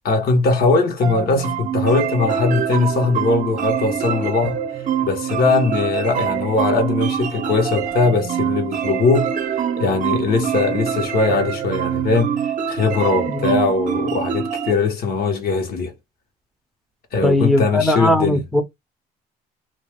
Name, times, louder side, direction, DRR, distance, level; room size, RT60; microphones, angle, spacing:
voice 1, 0.0-4.6 5.0-9.3 9.8-12.3 12.7-15.9 17.1-18.4, left 4 dB, 65° left, 1.2 m, -20 dB
sound 1, 1.0-14.7, right 9 dB, 50° right, 0.6 m, -24 dB
voice 2, 17.2-18.6, left 1 dB, ahead, 0.6 m, -18 dB
2.5 x 2.4 x 3.3 m
cardioid pair, 110°, 17 cm